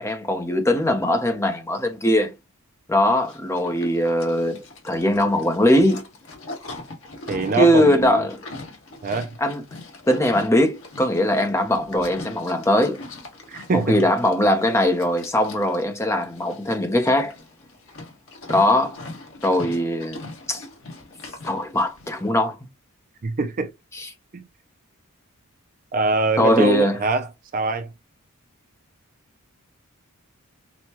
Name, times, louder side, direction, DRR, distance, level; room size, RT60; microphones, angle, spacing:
voice 1, 0.0-2.3 2.9-6.0 7.6-8.4 9.4-9.6 10.1-13.0 13.7-17.3 18.5-19.0 19.4-20.2 20.5-20.6 21.4-22.6 23.9-24.1 26.4-26.9, left 1 dB, 10° left, 0.7 m, -20 dB
Livestock farm animals working animals, 3.0-22.3, left 2 dB, 60° left, 1.5 m, -41 dB
voice 2, 7.3-8.3 9.0-9.3 13.5-14.0 23.2-23.7 24.3-24.4 25.9-27.3 27.5-27.9, right 3 dB, 40° right, 0.4 m, -23 dB
6.2 x 2.2 x 2.9 m
head